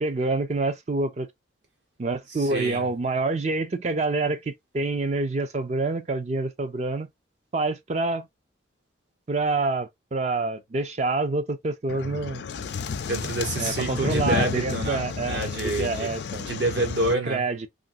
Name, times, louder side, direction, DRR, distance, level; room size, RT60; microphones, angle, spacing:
voice 1, 0.0-1.3 2.0-7.1 7.5-8.3 9.3-12.4 13.6-16.5 17.2-17.7, right 3 dB, 35° right, 0.4 m, -27 dB
voice 2, 2.4-2.9 13.0-16.1 16.4-17.4, right 2 dB, 65° right, 1.3 m, -28 dB
sound 1, 11.9-17.1, left 5 dB, 60° left, 0.4 m, -31 dB
3.0 x 2.5 x 2.5 m
head